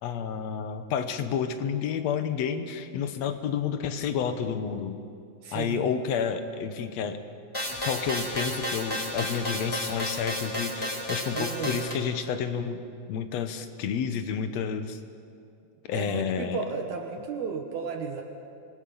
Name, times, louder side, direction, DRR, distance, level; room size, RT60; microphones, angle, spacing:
voice 1, 0.0-5.0 5.5-7.2 7.8-12.8 13.1-15.0 15.9-16.6, left 7 dB, 65° left, 9 dB, 2.1 m, -30 dB
voice 2, 5.4-5.9 11.3-11.8 15.9-18.2, right 6 dB, 70° right, 2 dB, 2.6 m, -34 dB
sound 1, 7.5-11.9, left 1 dB, 10° left, 3.5 m, -31 dB
26.0 x 21.0 x 5.7 m, 2.4 s
omnidirectional pair, 3.5 m